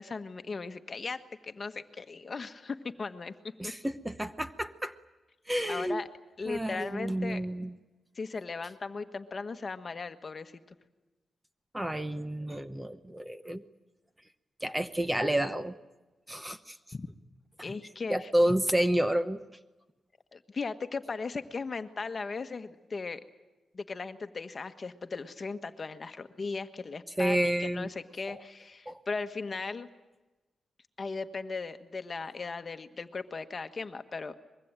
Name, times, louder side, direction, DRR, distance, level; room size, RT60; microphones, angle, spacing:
voice 1, 0.0-3.3 3.6-3.7 5.7-6.1 6.4-7.4 8.1-10.5 16.9-17.1 17.6-18.3 20.3-23.2 23.7-29.9 31.0-34.3, left 4 dB, 35° left, 9 dB, 1.4 m, -37 dB
voice 2, 3.6-4.9 5.5-6.0 6.5-7.7 11.7-13.6 14.6-15.7 16.3-16.8 17.6-17.7 18.1-19.4 27.2-27.9 28.3-28.4 28.9-29.0, right 1 dB, 10° right, 10 dB, 0.9 m, -30 dB
24.0 x 22.5 x 9.0 m, 1.1 s
cardioid pair, 110°, 0 cm